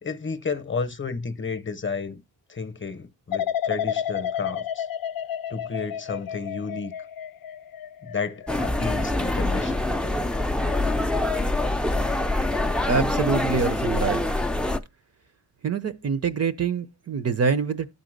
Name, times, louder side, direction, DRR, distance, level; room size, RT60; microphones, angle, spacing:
voice 1, 0.0-2.2 2.5-4.9 5.5-6.9 8.0-10.0, left 4 dB, 30° left, 0.9 m, -32 dB
sound 1, 3.3-10.2 10.7-11.1, left 9 dB, 55° left, 0.5 m, -32 dB
sound 2, 8.5-14.8, left 2 dB, ahead, 0.4 m, -25 dB
voice 2, 12.9-14.4 15.6-17.9, right 6 dB, 40° right, 0.6 m, -25 dB
11.5 x 4.0 x 6.5 m
cardioid pair, 115°, 41 cm